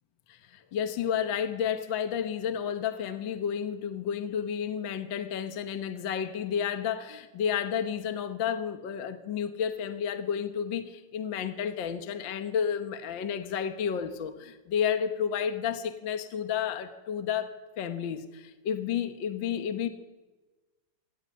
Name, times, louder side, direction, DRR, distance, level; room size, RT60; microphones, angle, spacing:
voice 1, 0.3-19.9, left 8 dB, 50° left, 8 dB, 1.6 m, -31 dB
26.5 x 15.0 x 9.7 m, 1.2 s
omnidirectional pair, 3.3 m